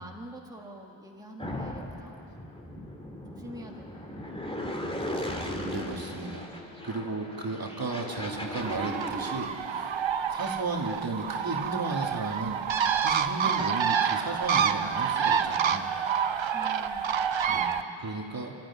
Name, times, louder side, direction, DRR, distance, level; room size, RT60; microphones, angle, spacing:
voice 1, 0.0-2.3 3.3-4.8 13.4-13.6 16.5-17.1 17.4-17.8, right 1 dB, 10° right, -1 dB, 2.0 m, -46 dB
sound 1, 1.4-9.5, left 1 dB, 10° left, 2.3 m, -37 dB
voice 2, 5.5-6.5 6.8-9.9 10.3-12.7 13.0-15.9 17.5-17.6 18.0-18.5, right 3 dB, 45° right, 1 dB, 2.5 m, -34 dB
Bird, 8.6-17.8, right 7 dB, 70° right, 1.0 m, -28 dB
26.5 x 13.5 x 10.0 m, 2.8 s
wide cardioid pair, 110°, 48 cm